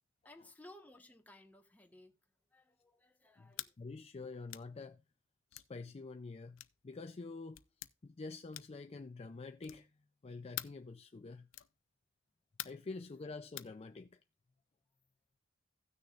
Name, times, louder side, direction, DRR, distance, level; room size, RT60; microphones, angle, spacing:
voice 1, 0.2-2.2 2.5-3.7, left 1 dB, 10° left, 1.3 m, -58 dB
voice 2, 3.4-5.0 5.5-7.6 8.0-9.9 10.2-11.5 12.6-14.2, left 3 dB, 30° left, 0.4 m, -47 dB
sound 1, 3.5-3.8 4.5-4.7 5.5-5.7 6.6-6.8 7.5-7.9 8.5-8.9 9.6-9.9 10.6-10.8 11.5-11.8 12.6-12.9 13.6-13.7, left 15 dB, 85° left, 0.5 m, -46 dB
16.5 x 6.5 x 2.4 m
head